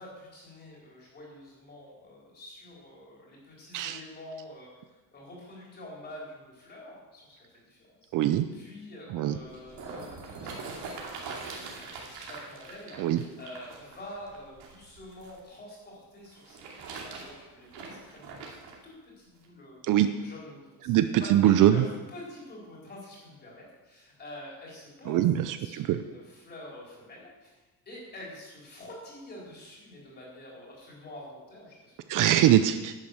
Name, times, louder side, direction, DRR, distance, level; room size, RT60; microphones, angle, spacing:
voice 1, 0.0-8.1 8.5-16.6 17.0-25.3 25.6-32.1, left 1 dB, 25° left, -3 dB, 4.0 m, -47 dB
voice 2, 8.1-8.5 9.1-9.4 13.0-13.2 19.9-20.1 20.8-21.8 25.1-26.0 32.1-32.9, right 12 dB, 55° right, 10 dB, 0.6 m, -22 dB
sound 1, 9.3-15.4 16.3-18.8 19.4-19.5, right 4 dB, 80° right, 2.7 m, -42 dB
10.5 x 9.0 x 6.6 m, 1.2 s
cardioid pair, 180°, 39 cm